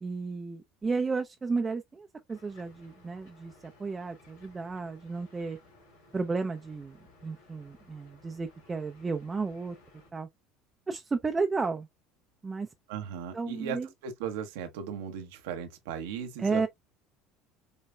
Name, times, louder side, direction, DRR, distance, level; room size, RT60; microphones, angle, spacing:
voice 1, 0.0-5.6 6.1-7.0 7.2-9.8 10.1-10.3 10.9-11.9 12.4-12.7 13.3-13.9 16.4-16.7, right 4 dB, 25° right, 0.6 m, -33 dB
sound 1, 2.3-10.1, left 2 dB, 80° left, 2.9 m, -58 dB
voice 2, 12.9-13.8 14.0-16.7, right 8 dB, 70° right, 0.9 m, -37 dB
5.3 x 3.2 x 2.2 m
hypercardioid pair, 70°, 0 cm